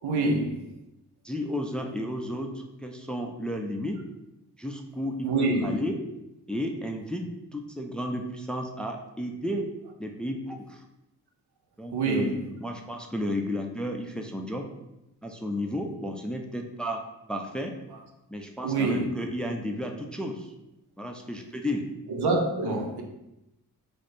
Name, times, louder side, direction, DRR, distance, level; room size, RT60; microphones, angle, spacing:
voice 1, 0.0-0.6 5.2-5.8 11.9-12.4 18.6-19.1 22.1-23.0, right 3 dB, 75° right, 0.7 m, -26 dB
voice 2, 1.2-4.0 4.6-6.0 6.5-9.7 10.0-10.8 11.8-12.3 12.6-14.7 15.2-17.0 17.3-17.7 18.3-20.5 21.0-21.9, equal, ahead, 0.5 m, -33 dB
3.1 x 2.5 x 4.2 m
supercardioid pair, 50°, 40 cm